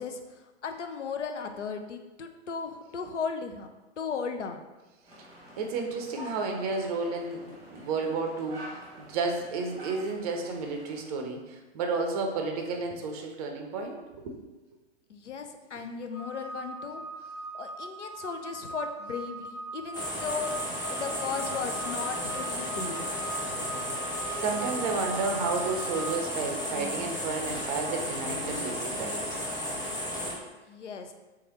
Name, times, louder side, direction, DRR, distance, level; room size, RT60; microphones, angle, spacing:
voice 1, 0.0-3.7 4.0-4.7 15.1-17.0 17.5-20.5 20.9-23.2 30.7-31.1, left 5 dB, 85° left, 6 dB, 0.5 m, -36 dB
sound 1, 5.0-11.0, right 1 dB, 10° right, 0.9 m, -47 dB
voice 2, 5.6-14.4 24.4-29.4, right 4 dB, 35° right, 3 dB, 0.5 m, -32 dB
sound 2, 16.1-26.2, right 2 dB, 50° left, 1.0 m, -40 dB
sound 3, 19.9-30.3, equal, 10° left, 0.7 m, -34 dB
3.4 x 3.1 x 2.9 m, 1.2 s
figure-of-eight pair, 105°, 35 cm